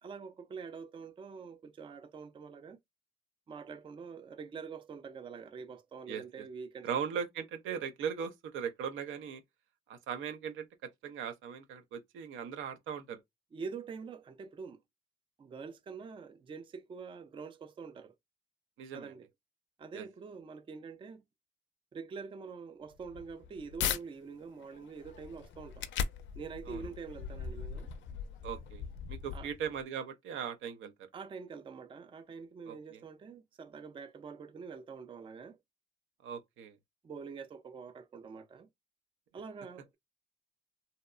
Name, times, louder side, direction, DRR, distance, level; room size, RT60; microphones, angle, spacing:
voice 1, 0.0-2.8 3.5-6.9 13.5-14.8 15.4-18.1 18.9-19.3 19.8-21.2 21.9-25.9 26.4-27.9 29.3-29.5 31.1-35.6 37.0-38.7 39.3-40.0, right 5 dB, 25° right, 0.4 m, -45 dB
voice 2, 6.8-9.4 9.9-10.7 11.0-13.2 18.8-19.1 19.9-20.0 26.7-26.8 28.4-28.8 29.1-31.1 32.7-33.0 36.2-36.8, right 7 dB, 80° right, 0.6 m, -39 dB
sound 1, 22.9-24.0 24.5-29.8, left 7 dB, 70° left, 0.4 m, -39 dB
2.7 x 2.1 x 2.3 m
cardioid pair, 90°, 20 cm